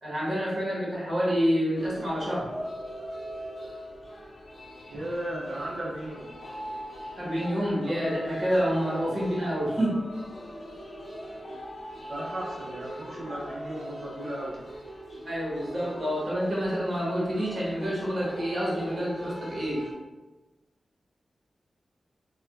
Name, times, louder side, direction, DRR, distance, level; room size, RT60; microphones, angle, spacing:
voice 1, 0.0-2.5 7.2-10.0 15.2-19.8, equal, 45° right, -6 dB, 1.0 m, -28 dB
sound 1, 1.7-19.9, equal, 40° left, 0.8 m, -40 dB
voice 2, 4.9-6.3 12.1-14.6, right 1 dB, 85° right, -6 dB, 0.6 m, -35 dB
4.4 x 2.2 x 2.3 m, 1.2 s
wide cardioid pair, 150°, 0 cm